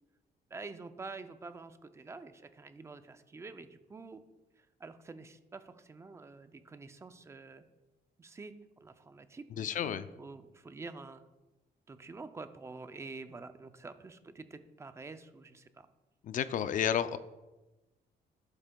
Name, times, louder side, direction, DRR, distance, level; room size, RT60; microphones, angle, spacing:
voice 1, 0.5-4.2 4.6-7.6 8.2-8.5 8.8-11.2 11.9-15.9, right 3 dB, 15° right, 10 dB, 0.4 m, -47 dB
voice 2, 9.6-10.0 16.2-17.2, left 8 dB, 50° left, 13 dB, 0.4 m, -31 dB
11.0 x 8.0 x 2.2 m, 1.1 s
cardioid pair, 165°, 17 cm